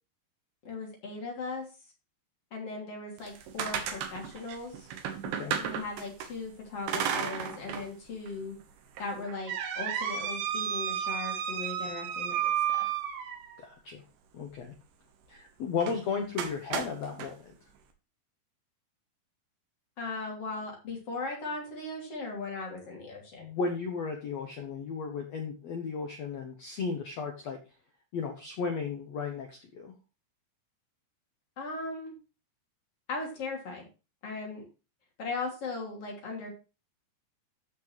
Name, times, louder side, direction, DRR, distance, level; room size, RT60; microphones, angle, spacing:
voice 1, 0.6-1.7 2.5-4.9 5.6-8.6 9.0-12.9 20.0-23.5 31.6-32.2 33.1-33.8 34.2-34.6 35.2-36.5, left 3 dB, 40° left, 0 dB, 3.6 m, -38 dB
sound 1, 3.2-6.3 6.9-7.9 8.3-8.4 9.0-13.6 15.8-16.0 16.4-17.3, right 9 dB, 75° right, 3.2 m, -33 dB
voice 2, 5.2-5.6 13.6-14.0 14.3-14.7 15.3-17.5 23.4-27.6 28.1-29.9, left 5 dB, 75° left, 3 dB, 1.5 m, -35 dB
13.5 x 6.0 x 3.2 m, 0.31 s
omnidirectional pair, 4.7 m